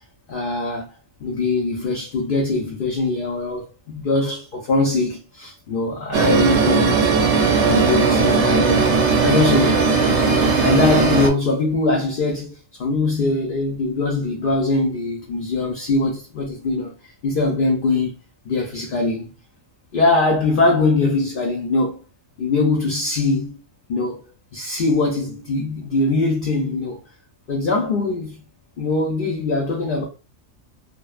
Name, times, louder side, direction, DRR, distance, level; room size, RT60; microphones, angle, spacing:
voice 1, 0.3-0.9 1.2-7.1 7.5-8.9 9.2-9.9 10.6-16.9 17.2-18.1 18.5-19.3 19.9-22.0 22.4-23.6 23.9-27.0 27.5-28.4 28.8-30.0, left 3 dB, 60° left, 0.6 m, -22 dB
sound 1, 6.1-11.3, right 4 dB, 70° right, 0.8 m, -17 dB
2.5 x 2.1 x 2.3 m
omnidirectional pair, 1.3 m